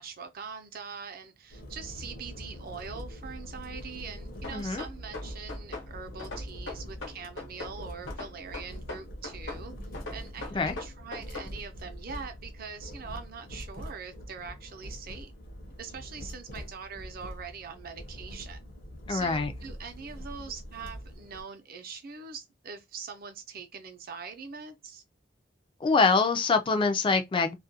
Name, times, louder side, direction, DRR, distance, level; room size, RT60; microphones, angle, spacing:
voice 1, 0.0-9.7 10.1-15.3 15.8-18.6 19.1-25.0, right 5 dB, 50° right, 0.5 m, -43 dB
sound 1, 1.5-21.4, equal, 50° left, 0.7 m, -43 dB
sound 2, 4.4-5.9 6.2-7.8 8.1-9.6 9.9-11.5, left 3 dB, 80° left, 1.0 m, -39 dB
voice 2, 4.5-4.8 10.5-10.7 19.1-19.5 25.8-27.6, left 4 dB, 25° left, 0.4 m, -24 dB
2.3 x 2.2 x 2.7 m
head